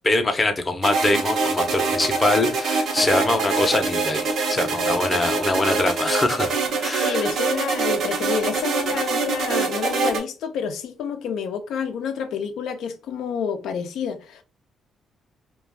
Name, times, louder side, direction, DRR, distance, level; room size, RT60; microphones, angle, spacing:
voice 1, 0.0-6.5 6.8-7.3, left 2 dB, 25° left, 0.6 m, -23 dB
sound 1, 0.8-10.2, right 4 dB, 70° right, 0.7 m, -24 dB
voice 2, 7.0-14.4, left 6 dB, 80° left, 0.4 m, -28 dB
2.4 x 2.3 x 3.4 m
cardioid pair, 90°, 0 cm